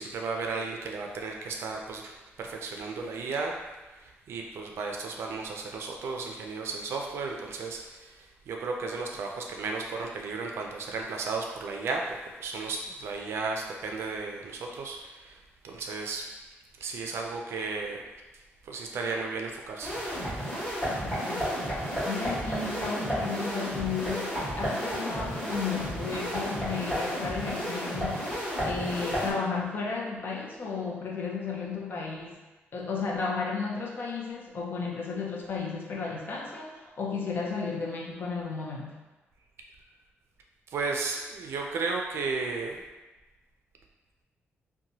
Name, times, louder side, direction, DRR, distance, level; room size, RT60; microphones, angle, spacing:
voice 1, 0.0-3.6 4.0-15.4 15.6-16.3 16.8-18.0 18.6-20.0 40.7-42.8, right 4 dB, 70° right, 1 dB, 0.4 m, -34 dB
sound 1, 19.8-29.3, equal, 15° left, 1.5 m, -32 dB
voice 2, 21.0-32.4 32.7-39.0, left 5 dB, 50° left, -2 dB, 0.5 m, -34 dB
2.9 x 2.2 x 2.7 m, 1.1 s
wide cardioid pair, 135°, 4 cm